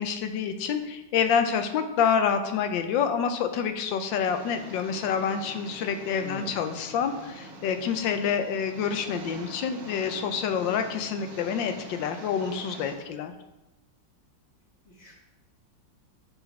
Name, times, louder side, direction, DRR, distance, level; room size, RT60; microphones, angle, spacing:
voice 1, 0.0-13.3, left 7 dB, 90° left, 8 dB, 1.4 m, -27 dB
Engine, 4.3-12.9, right 2 dB, 85° right, 1.9 m, -44 dB
voice 2, 6.2-6.7 14.9-15.2, left 4 dB, 45° left, -2 dB, 1.7 m, -43 dB
7.0 x 4.1 x 5.7 m, 1.0 s
omnidirectional pair, 2.0 m